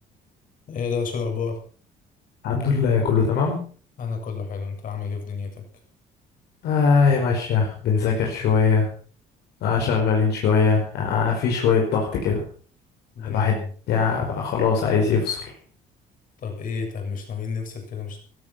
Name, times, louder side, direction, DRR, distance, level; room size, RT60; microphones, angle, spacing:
voice 1, 0.7-1.6 4.0-5.7 13.1-13.7 16.4-18.2, left 5 dB, 55° left, 4 dB, 7.2 m, -30 dB
voice 2, 2.4-3.6 6.6-8.9 9.6-12.4 13.2-13.6 13.9-15.5, left 5 dB, 75° left, 0 dB, 5.3 m, -21 dB
17.0 x 14.0 x 5.9 m, 0.42 s
cardioid pair, 110°, 17 cm